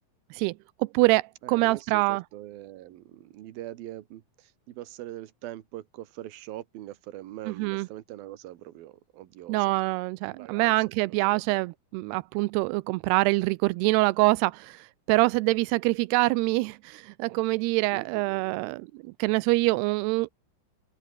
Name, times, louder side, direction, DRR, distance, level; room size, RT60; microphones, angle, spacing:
voice 1, 0.8-2.2 7.6-7.9 9.5-18.9 19.2-20.3, right 22 dB, 90° right, 2.7 m, -25 dB
voice 2, 1.4-9.7 10.3-11.6 17.9-18.8, right 14 dB, 70° right, 3.0 m, -43 dB
open air
omnidirectional pair, 4.6 m